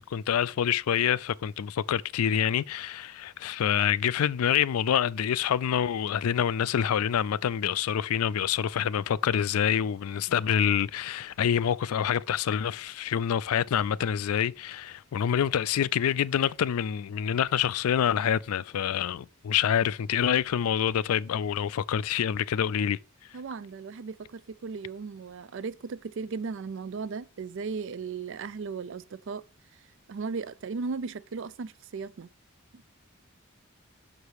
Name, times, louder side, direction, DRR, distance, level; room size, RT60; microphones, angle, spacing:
voice 1, 0.0-23.0, left 9 dB, 80° left, 0.3 m, -26 dB
voice 2, 23.3-29.4 30.1-32.3 32.7-32.8, right 5 dB, 60° right, 0.4 m, -36 dB
6.5 x 4.8 x 4.8 m
head